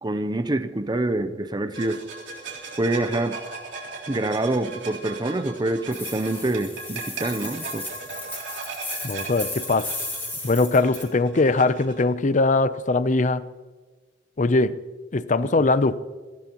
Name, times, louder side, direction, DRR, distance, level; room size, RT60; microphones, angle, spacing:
voice 1, 0.0-2.0 2.8-3.4 4.1-7.9, right 2 dB, 25° right, 0.6 m, -26 dB
sound 1, 1.7-12.0, right 4 dB, 80° right, 3.6 m, -38 dB
sound 2, 5.9-11.1, left 2 dB, 10° left, 3.3 m, -35 dB
voice 2, 9.0-10.0 10.4-13.4 14.4-14.8 15.1-16.0, left 3 dB, 40° left, 0.6 m, -21 dB
25.0 x 16.0 x 3.0 m
head